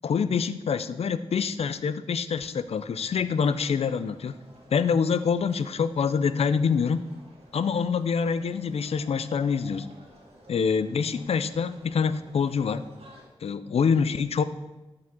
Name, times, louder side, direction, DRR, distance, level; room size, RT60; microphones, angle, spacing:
voice 1, 0.0-4.3 4.7-7.0 7.5-9.9 10.5-12.9 13.4-14.4, left 6 dB, 75° left, 13 dB, 0.4 m, -26 dB
sound 1, 2.8-13.2, right 1 dB, 75° right, 2.1 m, -53 dB
11.5 x 4.9 x 3.7 m, 1.0 s
cardioid pair, 45°, 10 cm